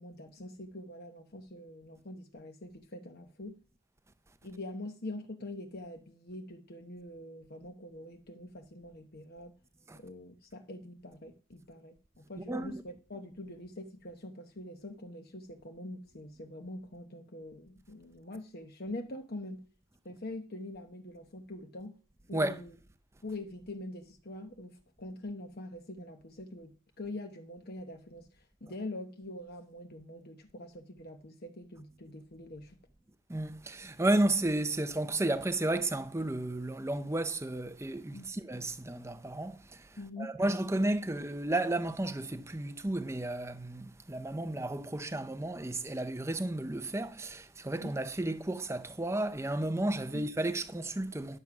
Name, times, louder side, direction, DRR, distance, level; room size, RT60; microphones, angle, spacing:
voice 1, 0.0-3.6 4.4-9.5 10.0-19.6 20.0-22.0 22.3-22.7 23.2-32.7 38.1-38.3 40.0-40.3 47.8-48.0 50.1-50.2, left 1 dB, 45° left, 1.0 m, -44 dB
voice 2, 12.5-12.8 22.3-22.6 33.3-51.4, right 1 dB, 10° right, 0.6 m, -33 dB
11.5 x 7.5 x 5.9 m
head